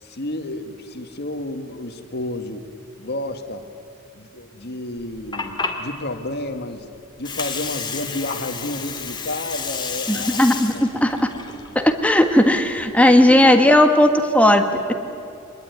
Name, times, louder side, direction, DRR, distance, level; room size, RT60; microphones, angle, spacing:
voice 1, 0.0-2.7 3.0-3.6 4.1-6.9 7.2-10.4 10.7-11.4 13.0-13.7, left 1 dB, 55° left, 7 dB, 1.9 m, -31 dB
Water, 5.0-12.9, left 5 dB, 25° left, 2.2 m, -31 dB
voice 2, 10.1-11.2 11.7-14.9, left 1 dB, 5° left, 5 dB, 1.6 m, -16 dB
24.5 x 21.0 x 9.6 m, 2.6 s
head